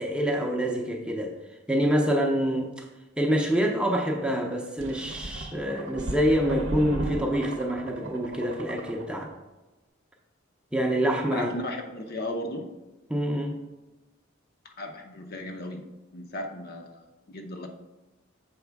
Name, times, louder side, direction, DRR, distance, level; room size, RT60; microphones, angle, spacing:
voice 1, 0.0-1.3 1.7-2.9 3.2-9.3 10.7-11.5 13.1-13.6, equal, 5° right, 1 dB, 0.6 m, -26 dB
sound 1, 4.8-9.4, right 2 dB, 65° right, 0.6 m, -37 dB
voice 2, 11.3-12.7 14.6-15.8 16.1-17.0 17.3-17.7, left 1 dB, 50° left, 3 dB, 0.7 m, -35 dB
7.0 x 4.8 x 3.4 m, 1.0 s
head